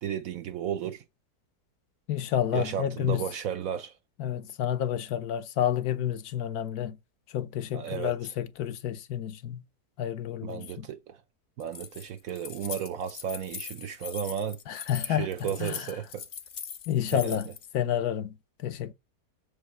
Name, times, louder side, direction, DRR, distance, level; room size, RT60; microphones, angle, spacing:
voice 1, 0.0-1.0 2.5-4.0 7.7-8.3 10.4-11.2 11.6-14.6 15.0-16.2 17.1-17.4, right 9 dB, 70° right, 0.9 m, -34 dB
voice 2, 2.1-3.2 4.2-7.0 7.3-9.6 10.0-10.9 14.7-15.3 15.6-15.9 16.9-18.9, left 10 dB, 70° left, 1.1 m, -30 dB
Keys jangling, 11.6-17.7, left 7 dB, 55° left, 0.5 m, -41 dB
7.2 x 5.2 x 4.7 m
omnidirectional pair, 1.8 m